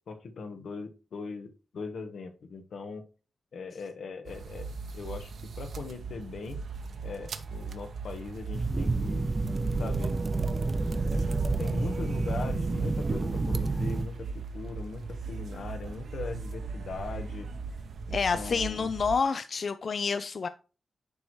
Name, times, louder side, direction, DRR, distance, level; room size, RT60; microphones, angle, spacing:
voice 1, 0.1-3.0 3.5-4.7 4.9-6.6 7.0-9.3 9.8-10.2 10.9-17.5 18.1-18.9, left 4 dB, 90° left, 1.3 m, -40 dB
sound 1, 4.3-19.2, right 4 dB, 80° right, 0.9 m, -39 dB
sound 2, 8.5-14.1, right 3 dB, 35° right, 0.5 m, -29 dB
voice 2, 18.1-20.5, left 5 dB, 55° left, 0.4 m, -28 dB
10.5 x 4.6 x 3.1 m
wide cardioid pair, 125°, 0 cm